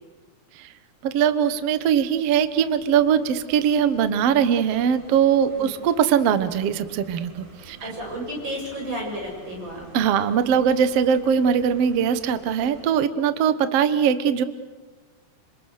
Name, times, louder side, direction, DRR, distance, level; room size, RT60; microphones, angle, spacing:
sound 1, 0.9-12.8, right 2 dB, 60° right, 6.9 m, -49 dB
voice 1, 1.0-7.9 9.9-14.4, right 8 dB, 80° right, 12 dB, 1.3 m, -21 dB
voice 2, 7.8-9.8, equal, 25° right, -1 dB, 8.5 m, -32 dB
27.5 x 26.5 x 6.6 m, 1.3 s
omnidirectional pair, 4.7 m